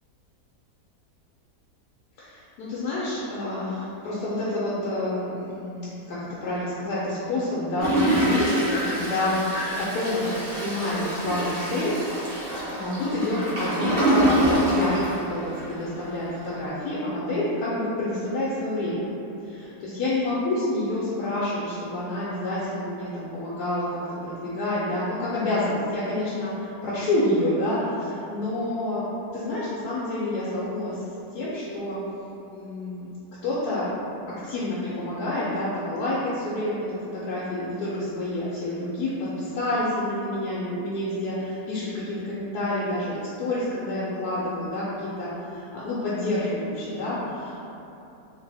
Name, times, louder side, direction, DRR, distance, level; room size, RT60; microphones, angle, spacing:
voice 1, 2.2-12.3 12.7-19.1 19.4-29.1 29.3-31.0 31.3-32.0 32.5-33.1 33.4-33.9 34.4-47.7, left 1 dB, 80° left, -9 dB, 1.1 m, -28 dB
Toilet flush, 7.8-15.8 16.3-16.4 16.6-16.7, right 1 dB, 45° right, 0.7 m, -25 dB
2.8 x 2.7 x 3.3 m, 2.9 s
omnidirectional pair, 1.7 m